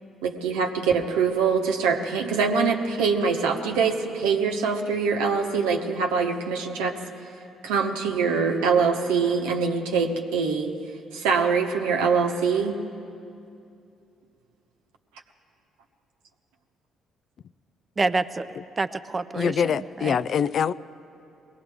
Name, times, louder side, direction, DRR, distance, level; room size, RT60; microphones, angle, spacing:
voice 1, 0.2-6.9 7.6-10.7 11.1-12.8, right 5 dB, 85° right, 3 dB, 1.0 m, -24 dB
voice 2, 18.0-20.2, right 3 dB, 30° right, 12 dB, 0.5 m, -28 dB
voice 3, 19.3-20.7, left 7 dB, 60° left, 16 dB, 0.3 m, -24 dB
21.5 x 17.5 x 3.5 m, 2.6 s
hypercardioid pair, 55°, 0 cm